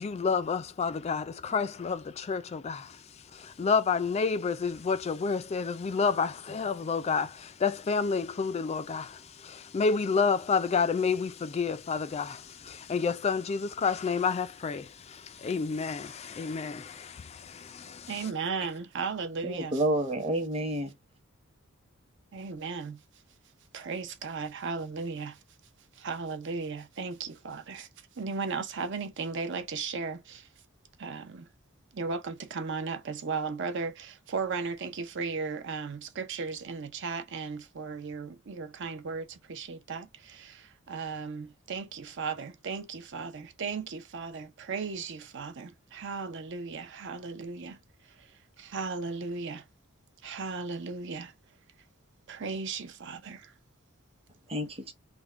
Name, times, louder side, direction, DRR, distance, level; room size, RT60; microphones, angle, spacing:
voice 1, 0.0-3.0 3.3-18.3, left 5 dB, 30° left, 0.3 m, -30 dB
voice 2, 18.1-19.8 22.3-23.0 23.7-25.4 25.9-27.9 28.2-30.5 31.0-31.5 31.9-47.8 48.1-49.7 50.2-51.3 52.3-53.5, right 4 dB, 60° right, 0.6 m, -36 dB
voice 3, 19.4-20.9 54.5-54.9, right 1 dB, 30° right, 0.9 m, -29 dB
3.4 x 2.2 x 3.5 m
head